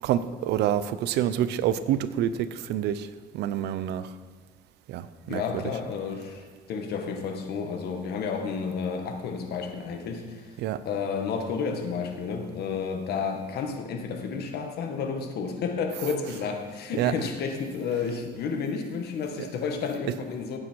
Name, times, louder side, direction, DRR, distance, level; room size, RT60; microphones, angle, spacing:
voice 1, 0.0-3.1 3.3-4.1 4.9-5.8 10.6-10.8 16.0-16.4 16.9-17.2 19.4-19.5 20.1-20.2, right 11 dB, 80° right, 14 dB, 0.7 m, -28 dB
voice 2, 5.3-10.6 10.9-20.6, left 5 dB, 70° left, 4 dB, 1.8 m, -31 dB
15.5 x 8.8 x 4.7 m, 1.5 s
cardioid pair, 110°, 17 cm